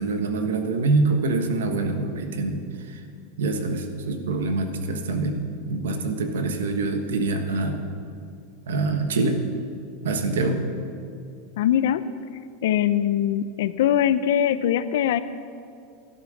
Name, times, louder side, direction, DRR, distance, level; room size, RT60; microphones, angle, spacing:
voice 1, 0.0-2.6 3.4-5.4 5.6-7.8 8.7-9.4 10.0-10.6, right 3 dB, 90° right, 6 dB, 1.5 m, -25 dB
voice 2, 11.6-12.0 12.6-15.2, left 10 dB, 75° left, 14 dB, 0.7 m, -22 dB
12.5 x 12.0 x 6.6 m, 2.4 s
supercardioid pair, 125°, 0 cm